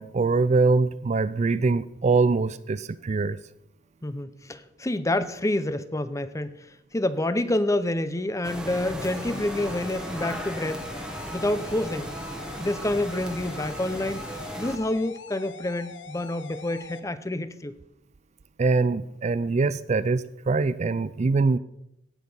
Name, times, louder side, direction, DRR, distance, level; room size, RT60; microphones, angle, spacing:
voice 1, 0.0-3.4 18.6-21.6, right 3 dB, 40° right, 16 dB, 0.4 m, -23 dB
voice 2, 4.0-6.6 6.9-10.8 11.3-12.1 12.6-14.2 14.6-17.8, left 1 dB, 15° left, 13 dB, 0.6 m, -28 dB
sound 1, 8.4-14.8, equal, 5° right, 1.2 m, -36 dB
sound 2, 9.0-17.0, left 5 dB, 85° left, 1.0 m, -44 dB
17.5 x 6.7 x 5.4 m, 0.81 s
head